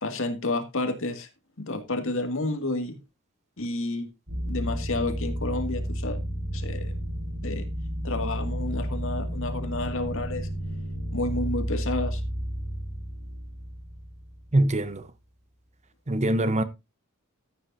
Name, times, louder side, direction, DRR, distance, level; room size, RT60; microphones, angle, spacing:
voice 1, 0.0-1.3 1.6-3.0 3.6-4.1 4.4-6.2 6.5-7.0 7.4-7.7 8.0-10.5 11.1-12.2, left 2 dB, 65° left, 2.1 m, -30 dB
sound 1, 4.3-14.7, equal, 60° right, 5.6 m, -32 dB
voice 2, 14.5-15.0 16.1-16.6, right 1 dB, 30° right, 0.9 m, -23 dB
14.5 x 8.8 x 2.7 m
head